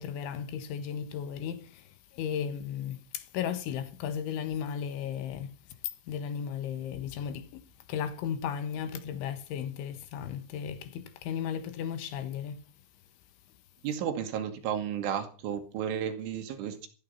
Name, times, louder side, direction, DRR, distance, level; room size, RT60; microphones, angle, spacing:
voice 1, 0.0-5.6 6.1-12.6, left 8 dB, 80° left, 3.8 m, -35 dB
voice 2, 13.8-16.9, right 9 dB, 90° right, 4.8 m, -33 dB
16.0 x 14.0 x 5.8 m
omnidirectional pair, 5.4 m